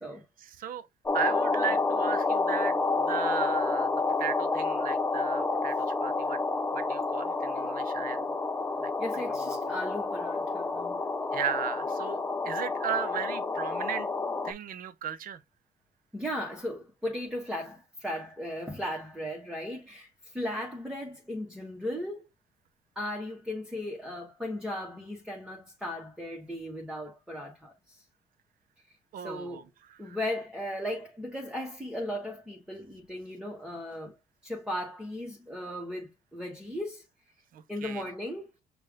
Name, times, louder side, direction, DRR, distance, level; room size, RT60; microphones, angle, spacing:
voice 1, 0.4-0.9 1.1-2.8 3.1-3.9 4.2-6.4 6.7-8.3 8.8-8.9 9.5-9.7 11.3-14.1 14.4-15.4 29.1-29.6 30.0-30.2 37.5-38.0, right 9 dB, 55° right, 0.7 m, -36 dB
sound 1, 1.1-14.5, left 3 dB, 15° left, 0.5 m, -29 dB
voice 2, 9.0-11.0 16.1-22.2 22.9-28.0 29.2-29.7 30.0-34.1 34.4-37.0 37.7-38.5, left 1 dB, 5° right, 1.2 m, -36 dB
5.5 x 2.5 x 3.5 m
cardioid pair, 110°, 17 cm